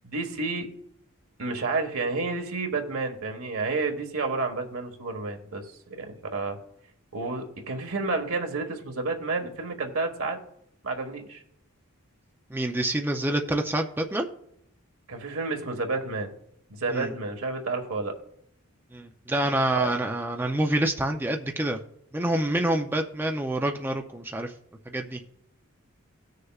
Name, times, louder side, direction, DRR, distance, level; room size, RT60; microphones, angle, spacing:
voice 1, 0.0-0.7 1.4-6.6 7.1-10.4 10.8-11.4 15.1-16.4 16.7-18.1 19.7-19.9, right 3 dB, 80° right, 4 dB, 1.4 m, -30 dB
voice 2, 12.5-14.3 16.9-17.1 18.9-21.8 22.1-24.5 24.9-25.2, right 1 dB, 10° right, 3 dB, 0.5 m, -27 dB
18.0 x 6.5 x 2.4 m, 0.74 s
head